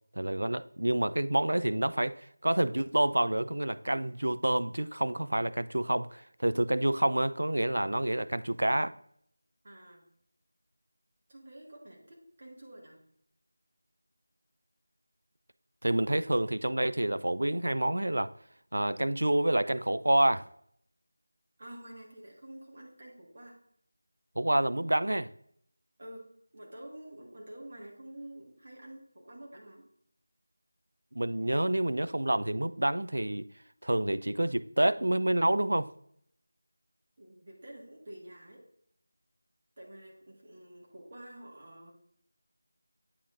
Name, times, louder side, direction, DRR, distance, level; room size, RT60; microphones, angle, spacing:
voice 1, 0.1-8.9 15.8-18.3 18.7-20.5 24.4-25.3 31.1-33.5 33.8-35.9, right 1 dB, 65° right, 0.3 m, -28 dB
voice 2, 9.6-10.1 11.3-13.1 21.6-23.6 26.0-29.9 37.2-38.6 39.8-41.9, right 1 dB, 35° right, 1.5 m, -49 dB
8.5 x 7.2 x 2.5 m
figure-of-eight pair, 170°, 0 cm